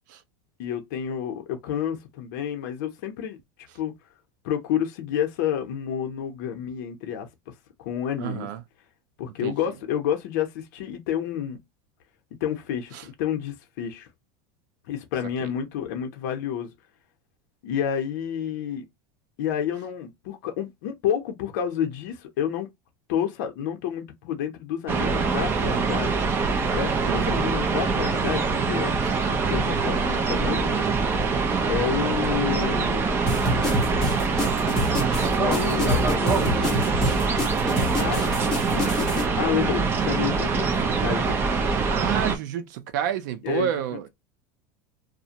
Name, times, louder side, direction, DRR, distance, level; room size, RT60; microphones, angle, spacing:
voice 1, 0.6-3.4 3.7-3.9 4.4-7.3 7.8-8.5 9.2-11.6 12.4-14.1 14.9-16.7 17.6-18.8 19.4-22.7 23.1-26.1 26.7-28.9 29.2-30.8 31.7-33.2 35.4-36.9 37.9-41.4 43.4-43.7, left 9 dB, 65° left, 0.6 m, -29 dB
voice 2, 8.2-8.6 9.4-9.5 12.9-13.1 15.4-15.5 27.1-27.4 40.5-40.6 41.9-44.1, right 10 dB, 70° right, 0.5 m, -30 dB
sound 1, 24.9-42.4, right 4 dB, 20° right, 0.4 m, -24 dB
sound 2, 33.3-39.2, left 1 dB, 5° left, 0.8 m, -27 dB
2.5 x 2.1 x 2.8 m
supercardioid pair, 150°, 10 cm